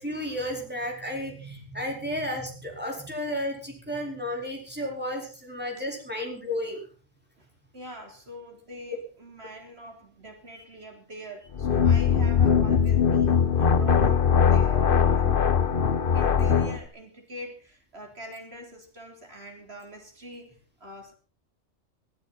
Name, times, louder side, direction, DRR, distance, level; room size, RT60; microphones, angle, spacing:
voice 1, 0.0-6.8 8.9-9.0 10.5-10.6, left 1 dB, 10° right, 0 dB, 4.7 m, -33 dB
voice 2, 7.7-15.3 16.1-21.1, right 1 dB, 55° right, 3 dB, 3.8 m, -44 dB
sound 1, 11.5-16.8, left 7 dB, 45° left, 1.2 m, -21 dB
21.5 x 13.5 x 4.3 m, 0.36 s
omnidirectional pair, 1.3 m